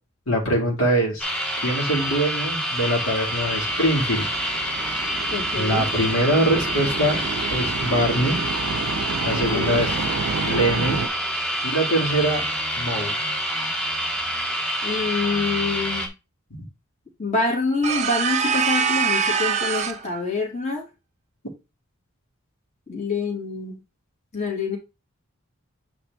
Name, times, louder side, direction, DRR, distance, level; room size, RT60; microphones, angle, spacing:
voice 1, 0.3-1.3 1.6-4.3 5.6-7.2 7.5-8.4 9.2-10.0 10.5-11.1 11.6-12.5 12.8-13.2 16.5-16.6, right 1 dB, 75° left, 2.1 m, -23 dB
sound 1, 1.2-16.1, equal, 5° left, 0.8 m, -27 dB
sound 2, 3.3-11.1, right 5 dB, 85° right, 0.6 m, -30 dB
voice 2, 5.3-5.9 9.3-9.8 14.8-16.1 17.2-20.9 22.9-23.8 24.3-24.8, left 3 dB, 30° left, 2.1 m, -26 dB
sound 3, 17.8-20.1, right 6 dB, 30° right, 0.6 m, -23 dB
8.4 x 3.2 x 3.5 m
head